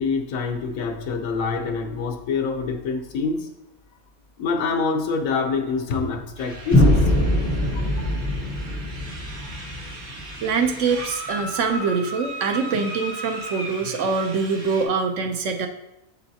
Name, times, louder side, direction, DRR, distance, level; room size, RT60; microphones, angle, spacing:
voice 1, 0.0-3.5 4.4-7.1 7.6-8.3, left 4 dB, 75° left, 6 dB, 1.2 m, -26 dB
sound 1, 6.4-14.8, right 1 dB, 90° right, 1.7 m, -37 dB
sound 2, 6.7-10.7, left 1 dB, 15° left, 0.5 m, -22 dB
voice 2, 10.4-15.7, right 5 dB, 65° right, 5 dB, 0.9 m, -24 dB
7.0 x 6.9 x 2.7 m, 0.86 s
omnidirectional pair, 1.5 m